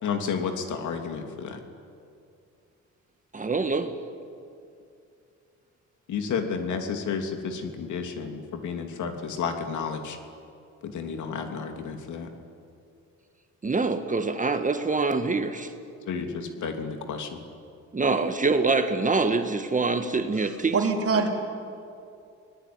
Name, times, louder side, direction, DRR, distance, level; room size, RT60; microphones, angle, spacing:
voice 1, 0.0-1.6 6.1-10.2 10.8-12.3 16.1-17.4, left 6 dB, 75° left, 5 dB, 3.0 m, -31 dB
voice 2, 3.3-3.9 13.6-15.7 17.9-20.8, right 3 dB, 25° right, 7 dB, 1.6 m, -25 dB
voice 3, 20.7-21.3, right 5 dB, 50° right, 2 dB, 4.0 m, -23 dB
25.5 x 19.5 x 9.7 m, 2.5 s
cardioid pair, 90°, 30 cm